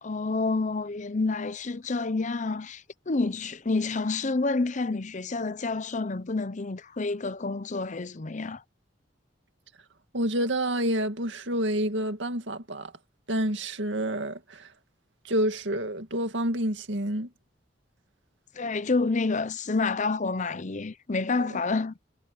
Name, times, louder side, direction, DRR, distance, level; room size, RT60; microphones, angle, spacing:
voice 1, 0.0-8.6 18.5-21.9, left 3 dB, 45° left, 0.8 m, -28 dB
voice 2, 10.1-12.9 13.3-14.7 15.2-17.3 21.4-21.5, right 1 dB, 85° right, 2.2 m, -28 dB
head